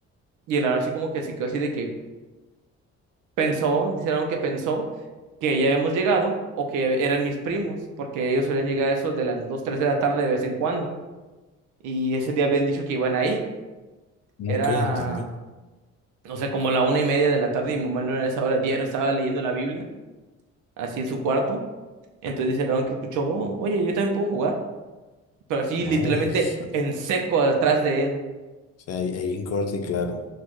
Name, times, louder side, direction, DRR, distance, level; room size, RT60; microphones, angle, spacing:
voice 1, 0.5-1.9 3.4-4.9 5.4-10.9 11.8-13.4 14.5-15.2 16.2-19.9 20.8-21.6 22.2-24.6 25.5-28.2, right 3 dB, 90° right, 2 dB, 0.7 m, -24 dB
voice 2, 14.4-15.3 25.8-26.3 26.6-26.7 28.9-30.3, left 4 dB, 55° left, 6 dB, 0.6 m, -28 dB
6.2 x 2.5 x 3.0 m, 1.2 s
cardioid pair, 90°, 30 cm